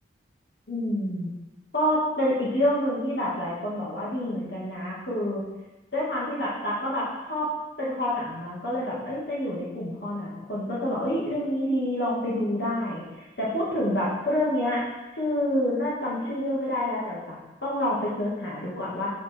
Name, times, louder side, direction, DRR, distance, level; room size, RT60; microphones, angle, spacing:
voice 1, 0.7-1.3 1.7-5.4 5.9-7.5 7.8-13.0 13.4-14.8 15.1-19.1, left 1 dB, 60° left, -6 dB, 2.4 m, -28 dB
7.7 x 5.5 x 4.7 m, 1.1 s
head